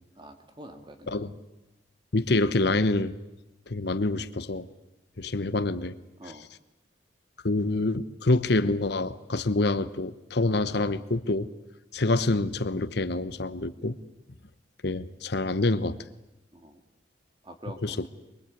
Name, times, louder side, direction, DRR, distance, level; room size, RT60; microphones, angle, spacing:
voice 1, 0.2-1.3 6.2-6.5 16.5-16.8 17.4-18.1, right 1 dB, 25° right, 6 dB, 2.2 m, -46 dB
voice 2, 2.1-3.1 3.7-4.7 5.2-5.9 7.4-11.5 11.9-14.0 14.8-16.0 17.8-17.9, left 2 dB, 60° left, 13 dB, 1.0 m, -26 dB
23.5 x 22.5 x 8.5 m, 0.95 s
head